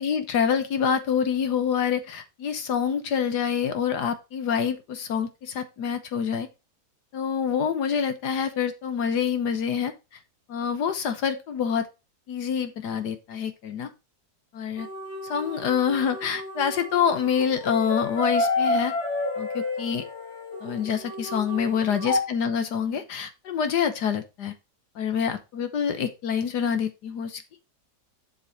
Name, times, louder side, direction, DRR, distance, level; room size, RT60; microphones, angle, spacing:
voice 1, 0.0-6.5 7.1-9.9 10.5-11.9 12.3-13.9 14.5-14.9 15.2-18.9 19.4-20.1 20.6-24.5 24.9-27.4, left 7 dB, 70° left, 10 dB, 1.5 m, -26 dB
sound 1, 14.8-22.2, left 2 dB, 40° left, 3.1 m, -30 dB
7.7 x 6.8 x 4.0 m, 0.26 s
omnidirectional pair, 1.9 m